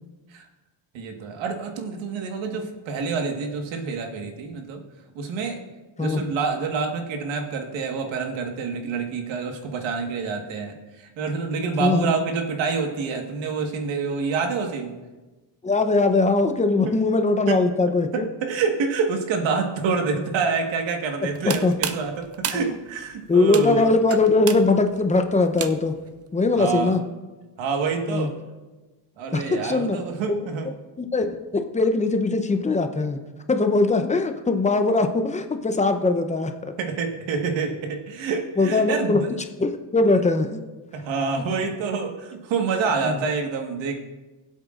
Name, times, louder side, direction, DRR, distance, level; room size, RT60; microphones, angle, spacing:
voice 1, 0.9-4.8 5.2-5.6 6.0-15.0 17.5-17.6 18.1-24.0 26.6-26.9 27.6-28.3 29.2-30.7 36.8-39.3 40.9-44.0, right 5 dB, 80° right, 4 dB, 1.6 m, -27 dB
voice 2, 11.8-12.1 15.6-18.3 21.4-21.7 22.5-22.6 23.3-26.0 26.3-27.0 28.1-28.3 29.3-30.0 31.0-33.2 33.5-36.7 38.6-39.2 39.6-40.6 43.0-43.2, left 3 dB, 15° left, 7 dB, 0.7 m, -21 dB
sound 1, 21.2-26.1, right 8 dB, 35° right, 0.6 m, -33 dB
20.5 x 8.1 x 2.5 m, 1.2 s
cardioid pair, 135°, 44 cm